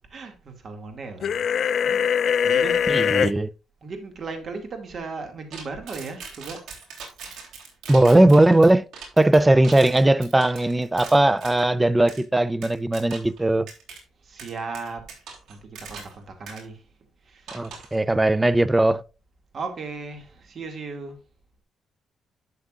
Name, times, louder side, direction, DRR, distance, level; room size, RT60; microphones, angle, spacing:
voice 1, 0.1-1.4 1.8-3.3 3.8-6.6 14.2-15.0 15.5-16.8 17.2-17.7 19.5-21.2, right 4 dB, 45° right, 2.2 m, -36 dB
sound 1, 1.2-3.3, left 7 dB, 55° left, 0.4 m, -22 dB
voice 2, 2.9-3.5 7.9-8.9 9.2-13.7 17.5-19.0, right 1 dB, 10° right, 0.4 m, -18 dB
sound 2, 5.5-11.7 12.1-12.2 12.6-13.4 13.7-14.0 14.4-16.2 16.5-16.6 17.5-18.0, right 5 dB, 90° right, 3.3 m, -41 dB
11.5 x 7.0 x 2.5 m
cardioid pair, 130°, 0 cm